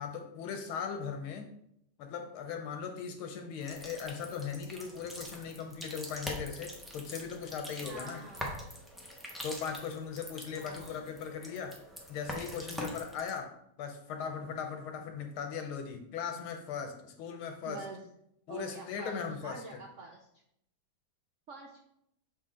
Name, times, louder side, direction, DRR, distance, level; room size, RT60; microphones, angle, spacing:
voice 1, 0.0-1.5 2.0-8.2 9.4-11.8 12.1-17.9 18.5-19.8, left 6 dB, 90° left, 5 dB, 1.7 m, -39 dB
sound 1, 3.6-13.4, equal, ahead, 0.3 m, -44 dB
voice 2, 7.8-8.6 10.6-11.0 17.6-18.0 18.5-20.3 21.5-21.8, right 4 dB, 85° right, 1 dB, 0.6 m, -46 dB
6.8 x 4.3 x 3.7 m, 0.75 s
omnidirectional pair, 2.2 m